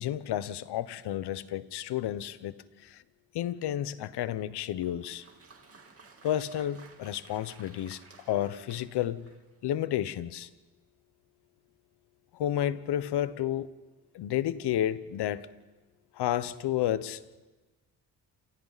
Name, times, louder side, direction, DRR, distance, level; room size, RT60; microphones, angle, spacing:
voice 1, 0.0-2.6 2.8-3.0 3.3-5.2 6.2-8.0 8.3-9.3 9.6-10.5 12.3-13.7 14.1-15.5 16.2-17.2, left 12 dB, 90° left, 1.0 m, -31 dB
Applause, 4.8-9.6, right 4 dB, 35° right, 3.0 m, -55 dB
28.0 x 28.0 x 4.1 m
cardioid pair, 105°, 39 cm